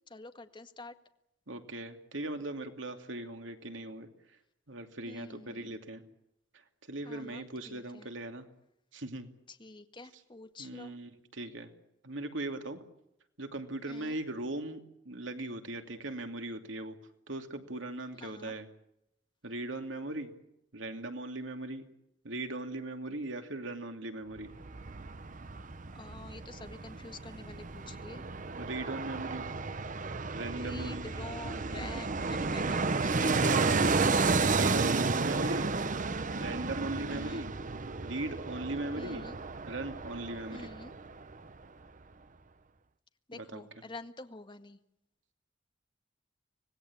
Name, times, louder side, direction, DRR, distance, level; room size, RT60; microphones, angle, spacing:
voice 1, 0.1-0.9 5.1-5.8 7.1-8.1 9.5-10.9 13.9-14.2 18.2-18.5 25.9-28.2 30.6-33.5 37.1-37.5 39.0-39.4 40.5-40.9 43.3-44.8, left 2 dB, 25° left, 7 dB, 1.8 m, -47 dB
voice 2, 1.5-4.1 4.7-6.0 6.9-8.5 8.9-9.3 10.6-11.7 12.0-12.8 13.4-14.8 15.0-16.9 17.3-18.7 19.4-20.3 20.7-21.9 22.2-24.5 28.6-29.5 30.3-31.1 33.0-34.0 34.5-35.7 36.3-37.5 38.0-39.2 39.7-40.7 43.3-43.6, right 2 dB, 80° right, 6 dB, 2.7 m, -39 dB
Fixed-wing aircraft airplane, 24.4-41.3 41.6-41.7, right 3 dB, 45° right, 1.0 m, -32 dB
25.5 x 19.5 x 8.8 m, 0.82 s
head